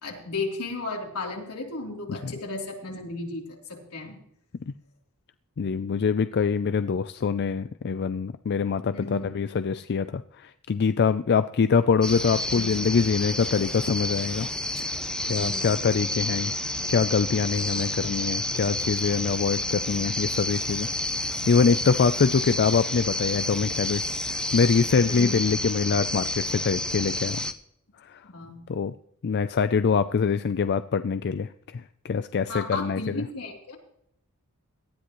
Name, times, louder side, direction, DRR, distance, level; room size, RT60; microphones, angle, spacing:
voice 1, 0.0-4.2 8.9-9.3 12.5-12.8 15.3-15.8 25.0-25.4 28.3-28.6 32.5-33.8, left 3 dB, 80° left, 0 dB, 3.4 m, -34 dB
voice 2, 5.6-14.5 14.8-14.9 15.2-16.6 16.9-20.9 21.2-27.4 28.0-28.2 28.7-28.9 29.2-33.2, left 5 dB, 50° left, 12 dB, 0.4 m, -24 dB
sound 1, 12.0-27.5, left 1 dB, 5° left, 0.7 m, -30 dB
18.0 x 12.5 x 3.1 m, 0.72 s
head